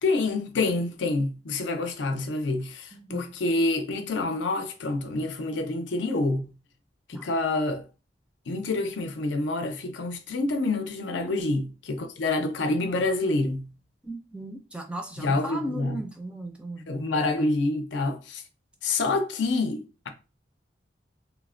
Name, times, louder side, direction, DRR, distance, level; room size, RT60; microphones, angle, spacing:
voice 1, 0.0-6.4 7.1-7.8 8.5-13.6 15.2-15.9 16.9-18.4 18.8-20.1, left 2 dB, 80° left, 0.5 m, -27 dB
voice 2, 2.9-3.4 7.1-7.3 14.0-16.9, right 1 dB, 5° right, 0.3 m, -37 dB
3.1 x 2.1 x 2.4 m
head